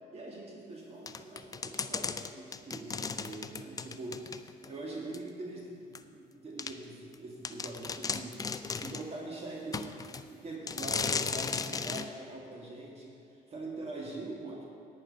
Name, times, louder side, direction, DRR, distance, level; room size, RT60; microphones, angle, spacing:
voice 1, 0.1-4.3 4.6-8.4 8.8-9.9 10.2-14.6, right 2 dB, 35° right, -2 dB, 1.8 m, -43 dB
sound 1, 1.1-4.7 5.1-5.2 5.9-6.0 6.6-6.7 7.1-7.2 7.4-9.1 9.7-10.2 10.7-12.1, left 5 dB, 20° left, 0.4 m, -35 dB
10.5 x 9.4 x 5.4 m, 2.5 s
cardioid pair, 110°, 17 cm